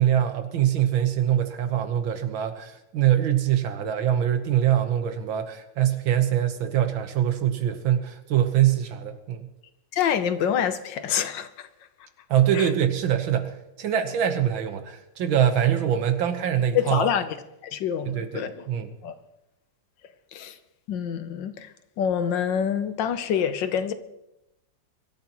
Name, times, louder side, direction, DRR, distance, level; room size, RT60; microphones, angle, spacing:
voice 1, 0.0-9.4 12.3-17.1 18.1-18.9, right 10 dB, 90° right, 2.0 m, -23 dB
voice 2, 9.9-11.7 12.5-12.7 16.7-17.4 17.6-18.6 19.0-19.1 20.3-20.6 20.9-23.9, left 8 dB, 70° left, 1.5 m, -26 dB
24.0 x 13.0 x 3.0 m
omnidirectional pair, 2.1 m